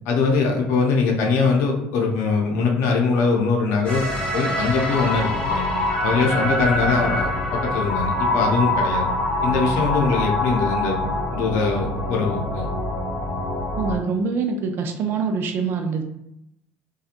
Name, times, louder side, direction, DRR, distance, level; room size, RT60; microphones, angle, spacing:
voice 1, 0.1-4.0 4.3-5.7 6.0-9.1 9.4-11.0 11.3-12.7, left 4 dB, 70° left, 1 dB, 0.6 m, -22 dB
sound 1, 3.9-14.0, left 1 dB, 30° left, 0.9 m, -24 dB
voice 2, 13.8-16.0, right 5 dB, 55° right, 5 dB, 0.4 m, -24 dB
2.8 x 2.3 x 2.4 m, 0.83 s
supercardioid pair, 100°, 5 cm